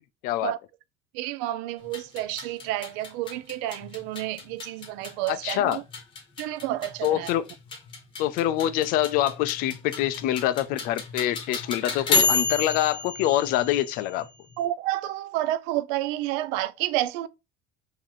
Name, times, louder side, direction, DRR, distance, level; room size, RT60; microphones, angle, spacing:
voice 1, 1.1-5.8 6.4-7.3 14.6-17.3, right 14 dB, 75° right, 0.4 m, -30 dB
sound 1, 1.8-14.6, left 4 dB, 25° left, 0.9 m, -31 dB
voice 2, 5.3-5.8 7.0-7.4 8.2-14.3, left 13 dB, 50° left, 0.4 m, -25 dB
3.1 x 2.7 x 3.7 m
cardioid pair, 170°, 18 cm